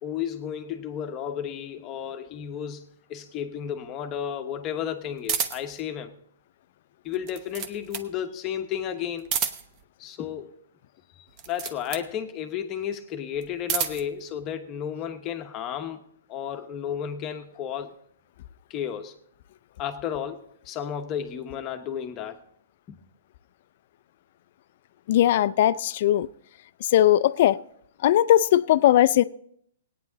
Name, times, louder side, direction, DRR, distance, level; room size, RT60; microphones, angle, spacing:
voice 1, 0.0-6.2 7.0-9.3 10.0-10.6 11.5-16.0 16.3-18.0 18.7-19.2 19.8-22.4 22.9-23.0, left 9 dB, 25° left, 1.1 m, -33 dB
sound 1, 5.2-5.8 7.1-8.1 9.2-9.8 11.3-12.1 13.4-14.1, right 7 dB, 30° right, 0.9 m, -30 dB
voice 2, 25.1-26.3 26.9-27.6 28.0-29.2, left 12 dB, 50° left, 0.5 m, -19 dB
17.5 x 9.4 x 4.0 m
hypercardioid pair, 145°, 0 cm